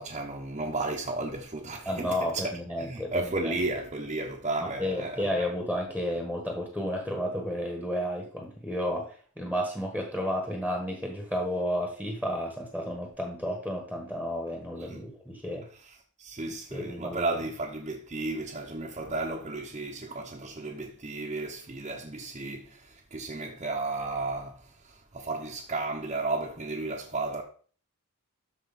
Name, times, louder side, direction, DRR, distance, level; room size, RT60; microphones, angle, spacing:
voice 1, 0.0-2.2 2.8-5.5 14.9-15.0 16.2-24.6 24.9-27.4, right 2 dB, 30° right, 0.9 m, -33 dB
voice 2, 1.8-3.5 4.6-15.7 16.7-17.4, equal, 5° left, 1.4 m, -32 dB
13.0 x 4.6 x 4.2 m
head